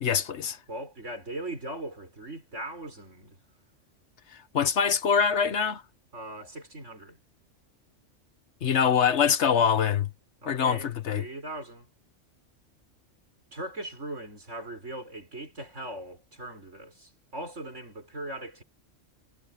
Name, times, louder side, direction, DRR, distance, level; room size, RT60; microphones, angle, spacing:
voice 1, 0.0-0.6 4.5-5.8 8.6-10.1 10.5-11.2, left 7 dB, 70° left, 1.3 m, -24 dB
voice 2, 0.7-3.4 6.1-7.2 10.4-11.9 13.5-18.6, right 1 dB, 70° right, 6.7 m, -39 dB
omnidirectional pair, 1.3 m